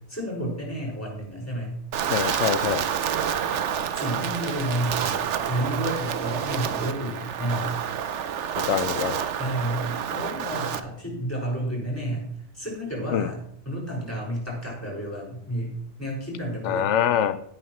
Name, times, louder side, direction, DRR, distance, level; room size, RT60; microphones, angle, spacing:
voice 1, 0.1-1.8 3.9-7.7 9.4-12.3 12.5-13.4 13.6-16.9, right 1 dB, 15° left, -4 dB, 5.8 m, -31 dB
Wind, 1.9-10.8, right 8 dB, 85° right, 1.1 m, -28 dB
voice 2, 2.1-2.9 8.6-9.2 13.1-13.3 16.6-17.4, left 9 dB, 85° left, 12 dB, 0.9 m, -24 dB
16.5 x 9.4 x 3.1 m, 0.71 s
omnidirectional pair, 1.2 m